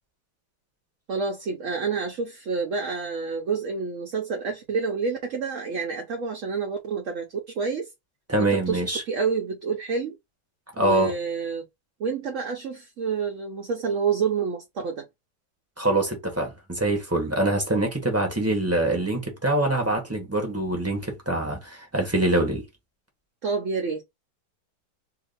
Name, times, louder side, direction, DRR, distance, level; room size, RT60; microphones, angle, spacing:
voice 1, 1.1-7.9 8.4-10.2 10.8-11.6 12.0-15.0 23.4-24.0, right 5 dB, 55° right, 0.9 m, -28 dB
voice 2, 8.3-9.0 10.8-11.1 15.8-22.6, right 2 dB, 10° right, 0.9 m, -24 dB
2.9 x 2.8 x 3.9 m
omnidirectional pair, 1.9 m